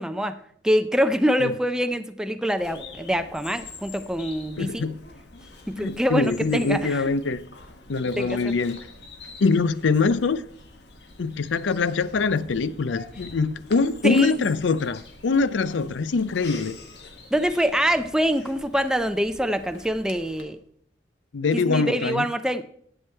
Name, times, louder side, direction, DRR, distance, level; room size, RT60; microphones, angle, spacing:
voice 1, 0.0-4.9 5.7-7.0 8.2-8.4 14.0-14.5 17.3-20.6 21.5-22.6, equal, 5° right, 0.4 m, -25 dB
Bird vocalization bird call bird song, 2.6-20.4, left 3 dB, 65° left, 1.5 m, -45 dB
voice 2, 4.6-5.0 5.8-7.4 7.9-8.8 9.4-10.4 11.2-16.8 21.3-22.3, left 4 dB, 80° left, 0.5 m, -23 dB
11.0 x 7.9 x 4.4 m
head